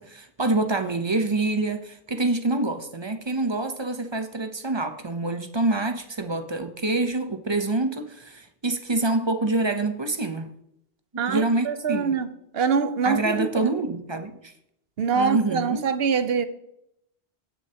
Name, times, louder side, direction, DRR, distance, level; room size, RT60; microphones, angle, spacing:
voice 1, 0.0-10.5 11.1-12.2 13.0-14.5 15.1-15.8, right 2 dB, 30° right, 0.7 m, -26 dB
voice 2, 11.2-13.7 15.0-16.5, right 5 dB, 65° right, 1.0 m, -24 dB
17.0 x 6.5 x 2.9 m
omnidirectional pair, 1.1 m